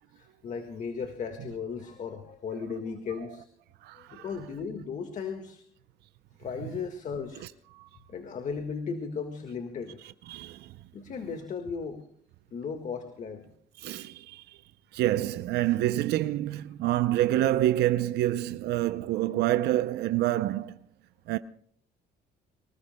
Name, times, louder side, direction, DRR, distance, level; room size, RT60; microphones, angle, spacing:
voice 1, 0.1-3.4 4.0-5.6 6.4-7.5 8.1-10.0 10.9-12.0 12.5-13.4, left 5 dB, 45° left, 1.7 m, -36 dB
voice 2, 3.8-4.3 7.4-7.5 7.7-7.9 10.3-10.7 13.8-14.6 14.9-20.8 21.3-21.4, right 14 dB, 75° right, 0.6 m, -27 dB
24.5 x 19.5 x 2.2 m
cardioid pair, 110°, 17 cm